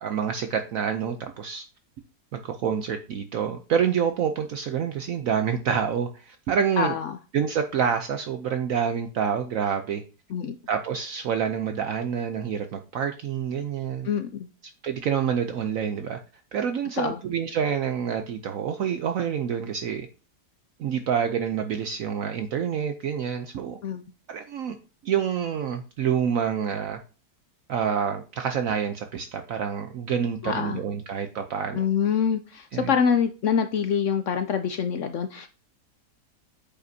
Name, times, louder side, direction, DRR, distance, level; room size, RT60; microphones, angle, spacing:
voice 1, 0.0-1.7 2.3-6.9 7.3-10.0 10.7-14.1 14.8-16.2 16.5-20.1 20.8-23.8 24.3-24.8 25.0-27.0 27.7-31.8 32.7-32.9, right 7 dB, 65° right, 0.9 m, -27 dB
voice 2, 6.8-7.1 10.3-10.6 14.1-14.5 17.0-17.2 23.8-24.0 30.4-30.8 31.7-35.5, left 7 dB, 75° left, 0.7 m, -25 dB
8.4 x 5.2 x 2.7 m
omnidirectional pair, 1.8 m